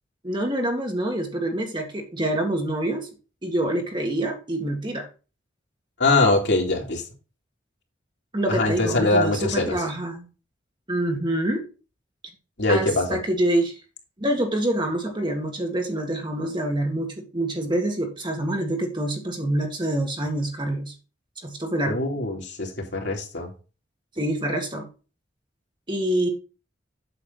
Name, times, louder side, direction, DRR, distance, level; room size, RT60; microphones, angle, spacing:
voice 1, 0.2-3.1 3.4-5.1 8.3-10.3 10.9-11.6 12.7-13.8 14.2-20.9 21.4-22.0 24.2-24.9 25.9-26.3, right 1 dB, 25° right, 1.9 m, -26 dB
voice 2, 6.0-7.0 8.5-9.8 12.6-13.2 21.8-23.5, left 2 dB, 65° left, 2.8 m, -22 dB
8.4 x 6.6 x 3.9 m
head